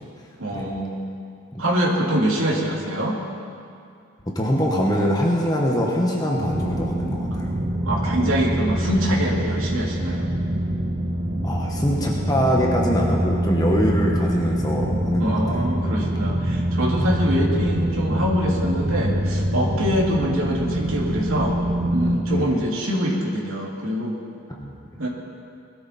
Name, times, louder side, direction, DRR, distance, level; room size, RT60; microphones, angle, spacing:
voice 1, 0.4-1.1 1.6-3.2 7.8-10.3 15.2-21.6 21.9-24.2 25.0-25.1, equal, 80° right, -3 dB, 2.6 m, -24 dB
voice 2, 4.3-7.5 11.4-15.6 21.8-22.6 24.6-24.7, equal, 20° left, -2 dB, 1.4 m, -23 dB
sound 1, 6.4-22.2, right 1 dB, 45° right, 1.3 m, -24 dB
21.0 x 13.0 x 4.4 m, 2.4 s
head